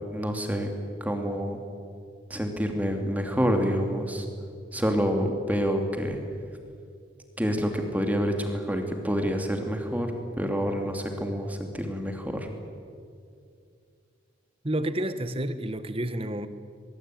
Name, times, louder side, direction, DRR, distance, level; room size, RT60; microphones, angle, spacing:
voice 1, 0.1-0.7 1.0-1.6 2.3-4.3 4.7-6.2 7.4-12.5, equal, 10° right, 4 dB, 2.7 m, -27 dB
voice 2, 14.6-16.5, right 1 dB, 30° right, 12 dB, 1.3 m, -30 dB
23.5 x 22.5 x 9.2 m, 2.3 s
head